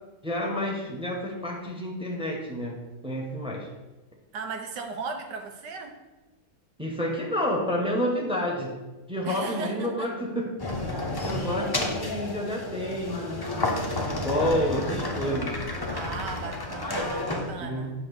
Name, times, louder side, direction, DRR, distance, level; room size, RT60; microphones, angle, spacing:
voice 1, 0.2-2.8 3.0-3.7 6.8-8.7 9.1-10.5 11.2-13.6 14.0-15.5 17.6-17.9, equal, 5° right, -1 dB, 1.1 m, -29 dB
voice 2, 4.3-5.9 9.2-10.1 15.9-17.9, right 4 dB, 85° right, 4 dB, 1.6 m, -36 dB
sound 1, 10.6-17.5, left 2 dB, 25° left, 0.5 m, -31 dB
7.8 x 3.5 x 6.5 m, 1.1 s
omnidirectional pair, 1.8 m